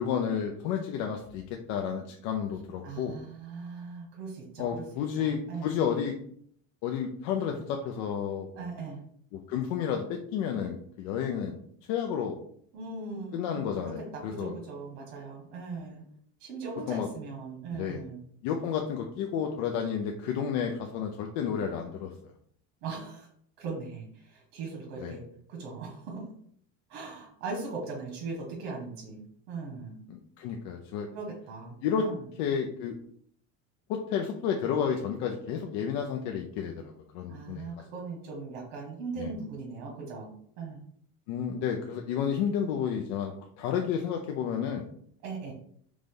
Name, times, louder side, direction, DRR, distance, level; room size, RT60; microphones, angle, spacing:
voice 1, 0.0-1.4 1.7-3.2 4.6-6.1 6.8-8.5 9.3-11.6 11.9-12.4 13.3-14.5 16.9-17.1 17.7-18.0 18.4-22.1 25.0-25.2 30.1-31.1 31.8-32.1 32.4-33.0 33.9-37.7 39.2-39.3 41.3-44.8, left 7 dB, 60° left, 2 dB, 0.6 m, -31 dB
voice 2, 2.8-4.8 5.2-5.7 8.5-9.0 12.7-16.0 16.4-18.2 22.8-23.3 23.6-26.3 26.9-29.2 29.5-30.0 31.1-32.2 37.3-40.3 40.6-40.8 45.2-45.5, right 4 dB, 75° right, -1 dB, 1.5 m, -39 dB
4.0 x 3.2 x 3.7 m, 0.63 s
cardioid pair, 160°, 37 cm